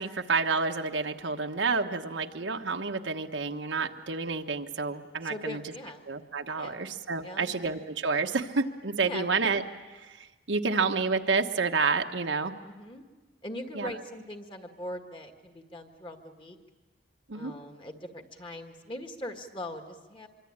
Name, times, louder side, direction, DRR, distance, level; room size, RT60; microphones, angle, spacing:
voice 1, 0.0-5.6 6.1-9.6 10.0-12.5 13.7-13.9 17.3-17.5, right 4 dB, 75° right, 5 dB, 1.3 m, -29 dB
voice 2, 5.2-6.0 6.6-6.8 7.2-7.5 9.0-9.3 12.6-13.0 13.4-16.6 17.3-20.3, left 1 dB, 25° left, 5 dB, 1.8 m, -41 dB
25.0 x 24.5 x 8.8 m, 1.2 s
head